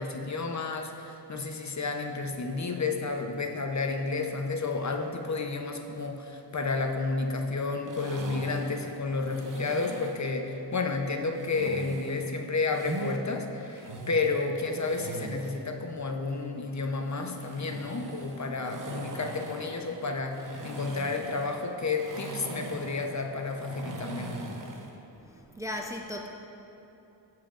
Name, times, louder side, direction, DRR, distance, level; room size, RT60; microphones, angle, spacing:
voice 1, 0.0-24.4, left 3 dB, 40° left, 3 dB, 0.8 m, -31 dB
sound 1, 7.9-10.3 11.4-13.2 13.6-15.6 17.0-25.0, right 3 dB, 45° right, 0.9 m, -41 dB
voice 2, 25.2-26.3, left 1 dB, 5° right, 1 dB, 0.5 m, -37 dB
16.5 x 7.4 x 2.5 m, 2.9 s
wide cardioid pair, 75°, 43 cm